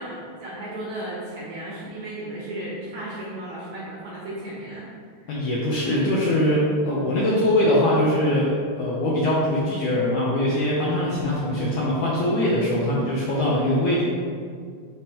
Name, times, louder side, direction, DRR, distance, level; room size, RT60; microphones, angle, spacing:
voice 1, 0.0-4.9 5.2-5.3, right 1 dB, 65° right, -7 dB, 1.9 m, -34 dB
voice 2, 5.3-8.5 8.8-14.0, left 1 dB, 75° left, -6 dB, 1.9 m, -22 dB
10.5 x 3.6 x 2.9 m, 2.1 s
omnidirectional pair, 4.4 m